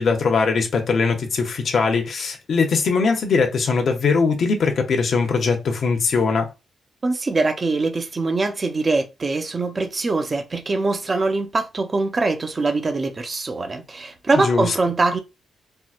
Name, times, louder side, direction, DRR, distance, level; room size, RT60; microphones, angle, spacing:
voice 1, 0.0-6.5 14.3-14.7, left 4 dB, 50° left, 0.8 m, -21 dB
voice 2, 7.0-15.2, right 3 dB, 25° right, 0.5 m, -23 dB
4.4 x 2.1 x 2.4 m
wide cardioid pair, 160°, 0 cm